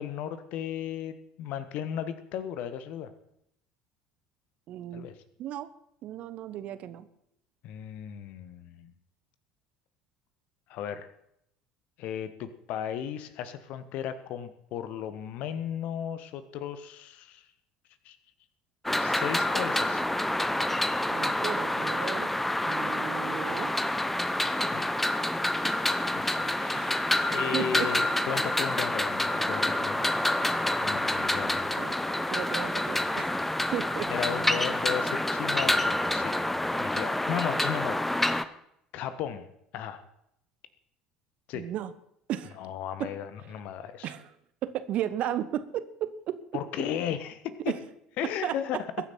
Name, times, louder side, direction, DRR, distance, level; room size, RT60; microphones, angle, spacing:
voice 1, 0.0-3.1 4.9-5.1 7.6-8.9 10.7-11.1 12.0-17.5 18.0-18.2 19.0-20.0 24.7-25.2 26.1-26.9 27.2-30.2 30.8-31.7 34.1-36.5 36.8-38.5 38.9-39.5 39.7-40.0 41.5-41.7 42.6-44.1 46.5-47.7 48.2-48.9, left 9 dB, 50° left, 12 dB, 1.3 m, -35 dB
voice 2, 4.7-5.1 5.4-5.7 6.0-7.1 21.1-22.3 22.6-23.7 26.7-26.9 27.5-27.9 31.8-31.9 32.3-33.4 33.7-34.1 41.5-41.9 42.3-42.6 43.0-43.1 44.0-44.3 44.6-46.4 47.7-47.8 48.4-48.6, right 11 dB, 45° right, 14 dB, 1.0 m, -34 dB
sound 1, 18.8-38.4, left 1 dB, 5° left, 0.9 m, -28 dB
21.5 x 9.9 x 4.4 m, 0.75 s
figure-of-eight pair, 60°, 3 cm